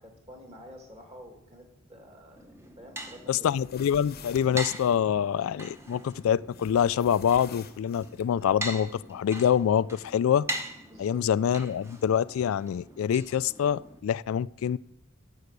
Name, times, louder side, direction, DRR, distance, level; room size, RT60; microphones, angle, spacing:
voice 1, 0.0-3.6 10.9-11.2, equal, 30° right, 2 dB, 2.4 m, -49 dB
sound 1, 2.4-14.0, right 1 dB, 15° right, 0.9 m, -42 dB
voice 2, 3.3-10.5 11.0-14.8, left 8 dB, 80° left, 19 dB, 0.3 m, -26 dB
sound 2, 3.3-5.0 6.5-8.3, left 5 dB, 45° left, 0.8 m, -48 dB
11.5 x 7.1 x 6.6 m, 0.82 s
head